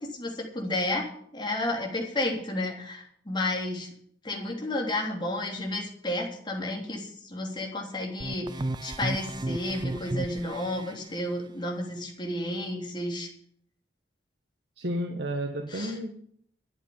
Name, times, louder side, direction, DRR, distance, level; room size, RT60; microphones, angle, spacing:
voice 1, 0.1-3.9 4.2-13.3 15.7-15.9, left 1 dB, 25° left, 0 dB, 3.5 m, -32 dB
sound 1, 8.2-10.9, right 2 dB, 25° right, 0.5 m, -33 dB
voice 2, 14.8-16.2, equal, 70° right, 4 dB, 1.5 m, -32 dB
12.0 x 8.3 x 9.8 m, 0.65 s
head